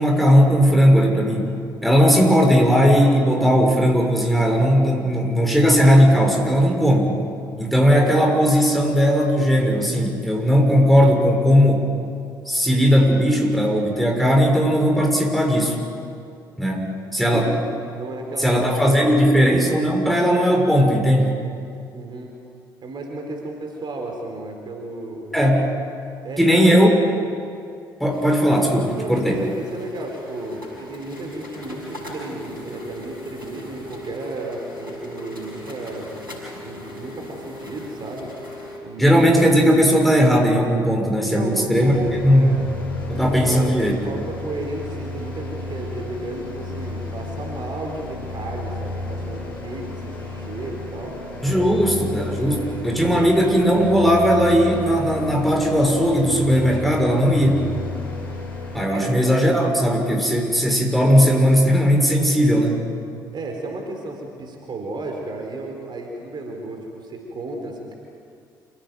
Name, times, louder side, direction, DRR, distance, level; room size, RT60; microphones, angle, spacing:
voice 1, 0.0-7.2 7.6-11.9 12.5-15.8 16.6-17.5 18.4-21.3 25.3-25.6 26.4-26.9 28.0-29.4 39.0-41.9 42.2-42.5 43.1-44.0 51.4-57.6 58.7-62.8, equal, ahead, 1 dB, 6.4 m, -17 dB
voice 2, 17.9-19.4 21.9-22.3 22.8-25.4 26.2-26.8 29.0-36.1 36.6-38.3 38.8-39.3 41.2-42.6 43.1-51.2 51.5-51.9 52.4-53.3 58.9-59.1 63.3-67.9, right 2 dB, 45° right, 2 dB, 4.4 m, -33 dB
sound 1, 28.1-38.8, left 1 dB, 90° right, 6.1 m, -38 dB
sound 2, 41.7-58.8, left 2 dB, 80° left, 3.2 m, -33 dB
28.0 x 17.0 x 9.3 m, 2.4 s
figure-of-eight pair, 50°, 11 cm